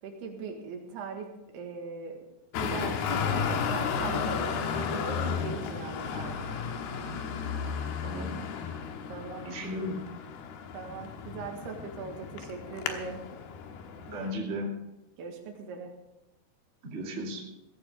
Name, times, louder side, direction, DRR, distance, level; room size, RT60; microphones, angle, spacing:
voice 1, 0.0-2.2 2.6-6.6 9.1-9.5 10.7-13.2 15.2-15.9, right 5 dB, 75° right, 3 dB, 3.6 m, -40 dB
Traffic noise roadway noise, 2.5-14.3, left 6 dB, 75° left, 3.0 m, -33 dB
voice 2, 9.4-10.0 14.1-14.7 16.8-17.4, equal, 25° right, -1 dB, 1.9 m, -35 dB
16.5 x 15.0 x 3.5 m, 0.93 s
omnidirectional pair, 4.9 m